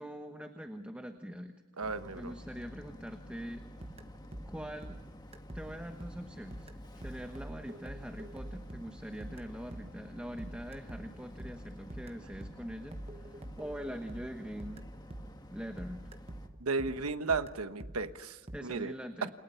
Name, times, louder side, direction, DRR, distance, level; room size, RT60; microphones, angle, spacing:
voice 1, 0.0-1.5 2.1-3.6 4.5-5.0 5.5-14.9 15.5-16.0 18.5-19.3, equal, 5° right, 5 dB, 1.1 m, -43 dB
Boat Water vehicle, 1.8-16.5, equal, 20° left, 1.7 m, -50 dB
voice 2, 1.8-2.3 16.6-18.9, right 4 dB, 90° right, 10 dB, 1.2 m, -34 dB
sound 1, 3.5-15.5 15.8-18.6, right 1 dB, 30° right, 1.2 m, -47 dB
29.0 x 28.0 x 5.7 m, 1.1 s
head